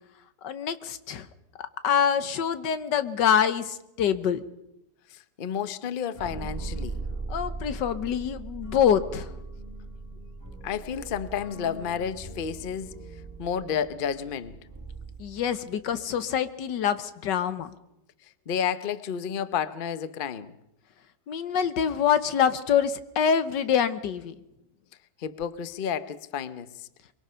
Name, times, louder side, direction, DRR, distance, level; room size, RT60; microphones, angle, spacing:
voice 1, 0.4-1.3 1.8-4.4 7.3-9.3 15.2-17.7 21.3-24.3, left 8 dB, 80° left, 1.7 m, -25 dB
voice 2, 5.1-7.0 10.6-12.9 13.4-14.6 18.5-20.6 25.2-26.9, left 8 dB, 40° left, 0.8 m, -31 dB
sound 1, 6.1-15.8, right 3 dB, 10° right, 1.9 m, -39 dB
23.0 x 23.0 x 5.6 m
omnidirectional pair, 1.9 m